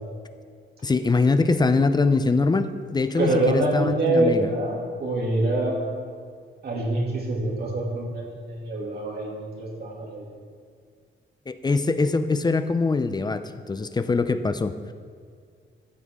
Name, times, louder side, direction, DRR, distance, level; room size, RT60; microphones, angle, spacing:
voice 1, 0.8-4.5 11.5-14.9, left 3 dB, 20° left, 10 dB, 0.4 m, -23 dB
voice 2, 3.2-6.1 6.6-10.3, right 2 dB, 50° right, -3 dB, 2.5 m, -25 dB
13.5 x 8.2 x 3.6 m, 2.1 s
wide cardioid pair, 150°, 21 cm